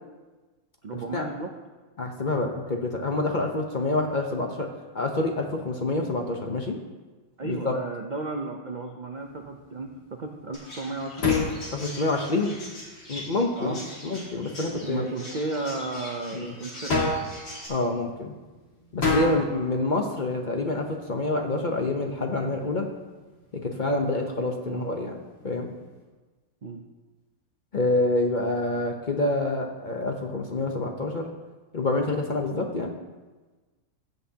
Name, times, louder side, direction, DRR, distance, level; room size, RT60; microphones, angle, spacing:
voice 1, 0.8-1.5 7.4-11.4 13.5-13.8 14.8-17.0 24.7-24.9 26.6-26.8, right 3 dB, 70° right, 3 dB, 0.4 m, -34 dB
voice 2, 2.0-4.7 4.9-6.8 7.4-7.7 11.7-12.6 13.1-15.1 16.3-16.5 17.7-18.3 18.9-22.8 23.6-25.2 25.4-25.7 27.7-31.3 31.7-32.9, left 2 dB, 40° left, 2 dB, 0.7 m, -27 dB
sound 1, 9.1-26.0, left 3 dB, 85° left, 2.8 m, -35 dB
Chirp tweet, 10.5-17.7, left 1 dB, 70° left, 3.1 m, -42 dB
15.5 x 8.0 x 2.8 m, 1.3 s
omnidirectional pair, 1.7 m